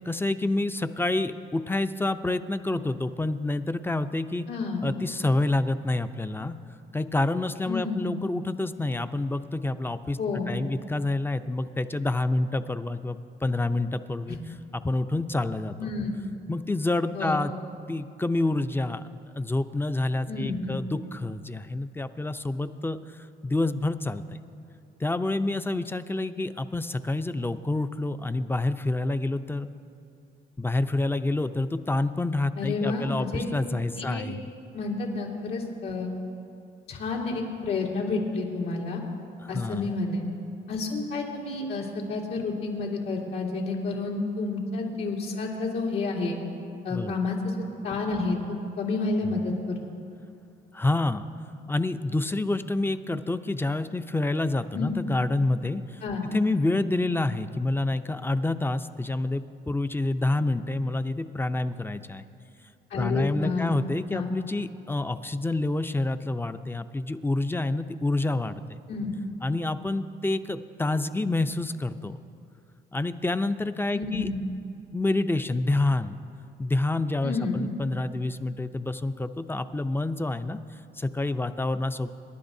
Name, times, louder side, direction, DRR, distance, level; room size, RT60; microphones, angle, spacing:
voice 1, 0.0-4.5 4.8-6.6 6.9-10.2 10.5-14.4 14.7-15.9 16.5-17.5 17.9-19.0 19.3-23.0 23.4-24.4 25.0-29.7 30.6-34.4 39.4-39.9 46.9-47.2 49.2-49.3 50.7-51.3 51.7-56.0 56.3-62.2 63.0-68.8 69.4-72.2 72.9-74.3 74.9-76.2 76.6-80.6 81.0-82.1, left 2 dB, 10° left, 11 dB, 0.5 m, -28 dB
voice 2, 4.5-4.8 7.6-8.0 10.2-10.5 14.3-14.4 15.8-16.1 17.1-17.4 20.3-20.7 32.6-33.5 34.0-34.2 34.7-36.1 36.9-39.0 39.5-40.2 40.7-46.4 46.8-47.5 47.8-48.4 48.8-49.8 54.7-54.9 56.0-56.2 62.9-63.7 64.1-64.3 68.9-69.1 73.9-74.3 77.2-77.6, left 3 dB, 90° left, -6 dB, 3.2 m, -30 dB
27.5 x 11.0 x 2.7 m, 2.5 s
cardioid pair, 90°, 20 cm